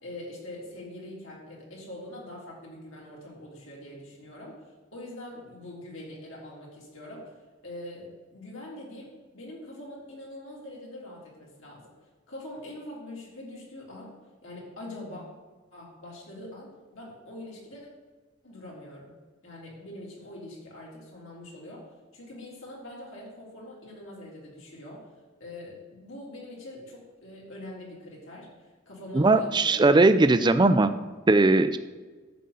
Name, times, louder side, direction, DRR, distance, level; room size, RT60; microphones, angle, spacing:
voice 1, 0.0-4.6 4.9-7.2 7.6-11.9 12.3-14.1 14.4-15.2 15.7-17.9 18.4-19.1 19.4-21.8 22.1-25.0 25.4-28.5 28.9-29.8, left 1 dB, 65° left, -4 dB, 3.3 m, -43 dB
voice 2, 29.1-30.9 31.3-31.8, right 2 dB, 20° right, 11 dB, 0.4 m, -19 dB
11.0 x 8.0 x 4.1 m, 1.4 s
head